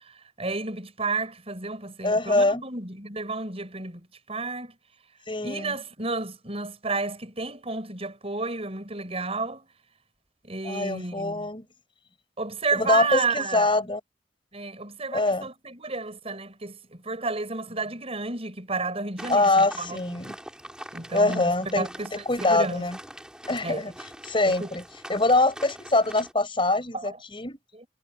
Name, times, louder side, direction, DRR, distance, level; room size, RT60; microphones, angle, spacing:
voice 1, 0.4-4.8 5.4-9.7 10.4-11.5 12.4-13.7 14.5-20.0 20.9-22.8 23.6-23.8 24.5-24.7 26.9-27.2 27.7-27.9, right 3 dB, 35° right, 7.3 m, -31 dB
voice 2, 2.0-2.6 5.3-5.7 10.6-11.6 12.7-14.0 15.1-15.5 19.3-20.4 21.1-23.0 23.5-23.9 24.2-24.8 25.1-27.6, left 2 dB, 30° left, 6.2 m, -24 dB
sound 1, 19.2-26.3, right 1 dB, 5° right, 5.5 m, -43 dB
head